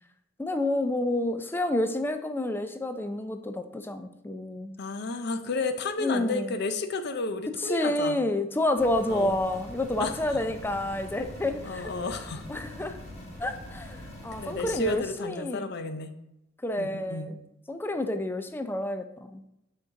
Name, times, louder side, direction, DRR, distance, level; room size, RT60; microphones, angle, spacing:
voice 1, 0.4-4.8 6.0-6.6 7.6-11.9 12.5-13.0 13.4-15.7 16.6-17.4 17.7-19.4, left 1 dB, 10° left, 8 dB, 0.4 m, -29 dB
voice 2, 4.8-8.2 9.1-9.3 10.0-10.2 11.6-12.5 14.4-16.1 16.8-17.3, left 3 dB, 60° left, 9 dB, 0.6 m, -32 dB
sound 1, 8.7-15.0, left 1 dB, 35° left, 1.6 m, -43 dB
6.3 x 4.5 x 3.7 m, 0.83 s
head